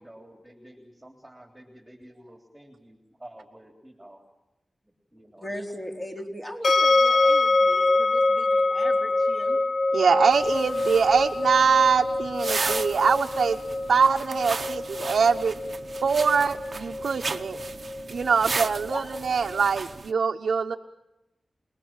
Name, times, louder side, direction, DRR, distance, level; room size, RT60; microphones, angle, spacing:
voice 1, 0.0-4.2 4.8-5.6 6.0-6.1, right 1 dB, 5° right, 3 dB, 3.4 m, -50 dB
voice 2, 5.4-9.6 18.9-19.1, equal, 20° left, 1 dB, 4.2 m, -38 dB
sound 1, 6.6-19.6, left 2 dB, 50° left, 1.1 m, -25 dB
voice 3, 9.9-13.6 13.9-15.6 16.0-17.6 18.1-20.8, right 5 dB, 85° right, 1 dB, 1.0 m, -23 dB
sound 2, 10.3-20.1, right 4 dB, 50° right, 1.0 m, -35 dB
28.5 x 21.0 x 7.4 m, 0.96 s
wide cardioid pair, 100°, 0 cm